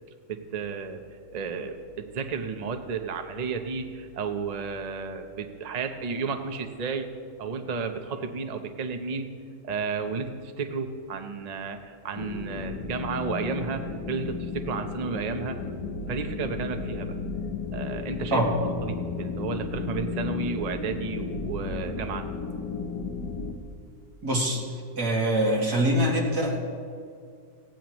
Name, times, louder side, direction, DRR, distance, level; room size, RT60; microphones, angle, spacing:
voice 1, 0.3-1.0 1.3-7.1 7.4-9.3 9.6-15.6 16.1-17.1 17.7-22.3, right 5 dB, 35° right, 6 dB, 0.7 m, -32 dB
sound 1, 12.2-23.5, left 4 dB, 75° left, 1.5 m, -34 dB
voice 2, 24.2-24.6 25.0-26.6, right 1 dB, 90° right, -2 dB, 2.8 m, -24 dB
18.0 x 16.5 x 3.1 m, 2.2 s
omnidirectional pair, 1.6 m